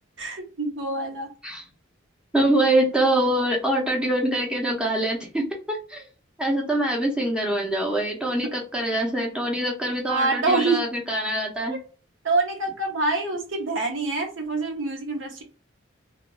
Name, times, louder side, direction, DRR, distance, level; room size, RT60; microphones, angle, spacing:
voice 1, 0.2-1.3 10.1-10.8 11.7-11.8 12.2-15.4, right 3 dB, 70° right, 0.9 m, -26 dB
voice 2, 2.3-6.0 6.4-11.8, right 1 dB, 5° right, 0.8 m, -24 dB
2.9 x 2.5 x 2.4 m
head